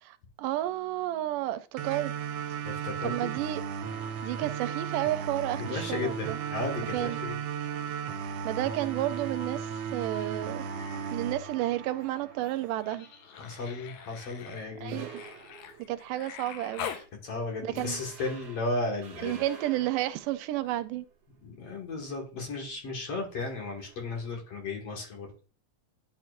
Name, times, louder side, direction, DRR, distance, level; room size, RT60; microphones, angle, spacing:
voice 1, 0.0-2.1 3.0-3.6 4.2-6.4 6.9-7.2 8.4-10.7 11.1-13.1 14.8-15.1 15.9-16.9 17.6-18.0 19.2-21.1, right 14 dB, 85° right, 2.2 m, -31 dB
sound 1, 1.8-12.7, right 7 dB, 70° right, 1.7 m, -35 dB
voice 2, 2.6-3.3 5.6-7.3 13.4-15.0 17.2-19.4 21.4-25.3, left 3 dB, 55° left, 2.5 m, -35 dB
Human voice, 10.4-11.2 11.5-17.1 18.7-18.8, left 9 dB, 85° left, 2.6 m, -44 dB
sound 2, 14.0-16.3 16.7-16.9 17.3-17.4 17.7-21.2 23.3-24.3, right 5 dB, 55° right, 2.5 m, -49 dB
10.5 x 5.8 x 2.5 m
omnidirectional pair, 3.7 m